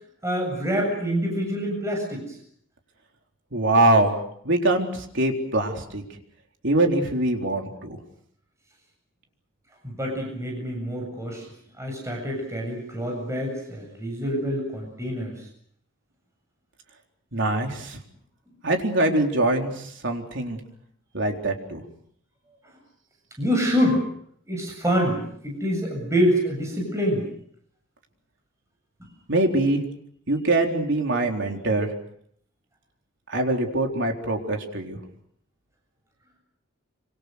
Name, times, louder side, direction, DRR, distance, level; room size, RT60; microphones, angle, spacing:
voice 1, 0.2-2.2 9.8-11.4 11.8-15.4 23.4-24.0 24.5-27.2, equal, 15° right, 0 dB, 7.5 m, -26 dB
voice 2, 3.5-4.2 4.4-6.0 6.6-8.0 17.3-18.0 18.6-20.6 21.1-21.8 29.3-29.8 30.3-31.9 33.3-35.0, right 2 dB, 60° right, 3 dB, 4.0 m, -23 dB
27.0 x 26.0 x 6.5 m, 0.66 s
head